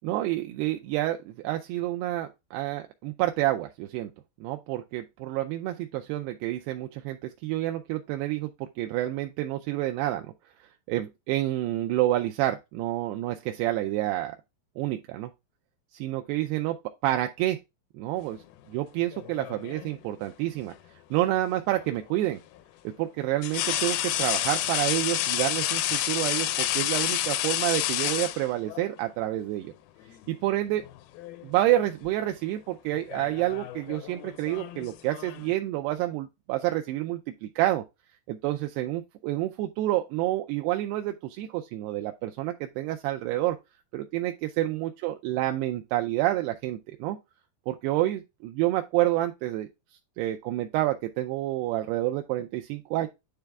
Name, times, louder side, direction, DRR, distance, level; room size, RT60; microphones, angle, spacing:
voice 1, 0.0-4.1 4.4-10.3 10.9-14.4 14.8-15.3 15.9-16.8 17.0-17.6 17.9-18.4 18.7-20.7 21.1-22.4 23.0-29.7 30.3-30.8 31.4-37.8 38.3-43.6 43.9-47.2 47.7-49.7 50.2-53.1, right 15 dB, 85° right, 2.6 m, -28 dB
sound 1, 19.1-20.0 21.7-21.9 23.4-28.9 30.1-30.3 30.7-31.4 31.7-32.1 32.9-35.5, left 13 dB, 80° left, 2.3 m, -30 dB
9.8 x 3.5 x 3.5 m
omnidirectional pair, 4.8 m